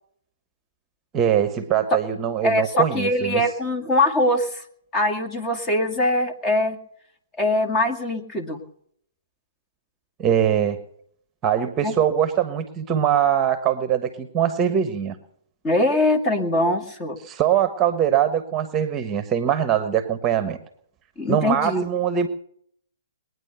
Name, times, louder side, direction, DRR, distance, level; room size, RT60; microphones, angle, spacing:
voice 1, 1.1-3.4 10.2-10.8 11.4-15.2 17.2-20.6 21.3-22.3, right 9 dB, 20° right, 11 dB, 1.2 m, -22 dB
voice 2, 2.4-4.6 4.9-6.8 7.4-8.6 11.8-11.9 15.6-17.2 21.2-21.9, left 1 dB, 20° left, 6 dB, 2.2 m, -22 dB
21.5 x 9.6 x 6.8 m, 0.65 s
hypercardioid pair, 130°, 0 cm